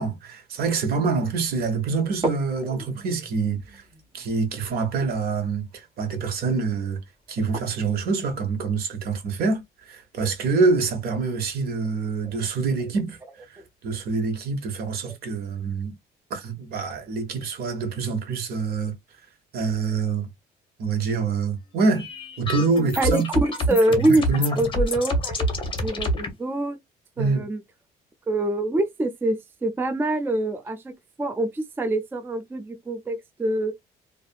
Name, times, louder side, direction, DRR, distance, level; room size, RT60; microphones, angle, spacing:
voice 1, 0.0-3.8 4.1-7.0 7.3-9.6 9.9-13.2 13.5-15.9 16.3-18.9 19.5-20.3 20.8-22.0 22.4-23.3 23.9-24.6 27.2-27.5, right 4 dB, 65° right, 0.9 m, -26 dB
sound 1, 0.9-1.0 1.5-1.6 2.1-8.0, right 1 dB, 30° right, 1.6 m, -39 dB
sound 2, 21.9-26.3, equal, 30° left, 0.9 m, -27 dB
voice 2, 23.0-24.2 24.6-25.5 25.8-26.8 27.2-27.6 28.3-29.4 29.6-30.9 31.2-33.7, right 1 dB, 15° right, 0.4 m, -24 dB
2.6 x 2.5 x 2.3 m
cardioid pair, 110°, 17 cm